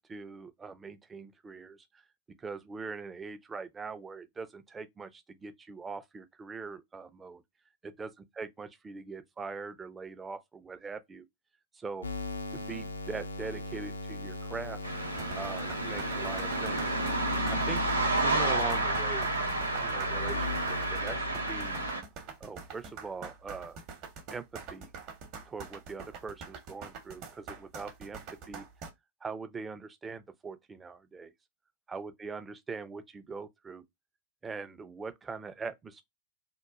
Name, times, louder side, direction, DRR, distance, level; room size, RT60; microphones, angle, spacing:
voice 1, 0.0-2.0 2.4-7.4 7.8-11.3 11.7-12.1 12.5-14.8 15.3-17.0 17.5-17.8 18.1-21.9 22.4-23.8 24.3-24.9 25.5-28.2 28.5-28.7 29.2-31.3 31.9-33.8 34.4-36.0, right 4 dB, 15° right, 0.4 m, -42 dB
sound 1, 12.0-21.9, left 3 dB, 80° left, 0.4 m, -38 dB
sound 2, 14.8-22.0, right 2 dB, 80° right, 0.6 m, -31 dB
sound 3, 15.1-28.9, right 5 dB, 40° right, 0.8 m, -45 dB
2.9 x 2.2 x 3.5 m
figure-of-eight pair, 90°, 0 cm